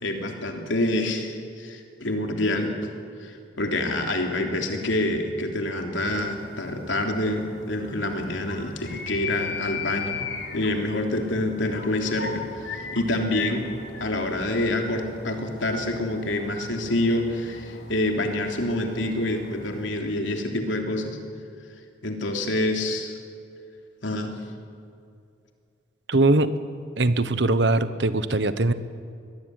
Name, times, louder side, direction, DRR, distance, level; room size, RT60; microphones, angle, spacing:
voice 1, 0.0-2.7 3.2-13.7 14.0-21.2 22.0-23.2 24.0-24.4, left 1 dB, 85° left, 3 dB, 3.4 m, -27 dB
sound 1, 6.0-19.9, left 5 dB, 60° left, 2.6 m, -38 dB
voice 2, 26.1-26.5 27.0-28.7, right 2 dB, 70° right, 13 dB, 1.1 m, -21 dB
22.5 x 19.0 x 9.7 m, 2.5 s
head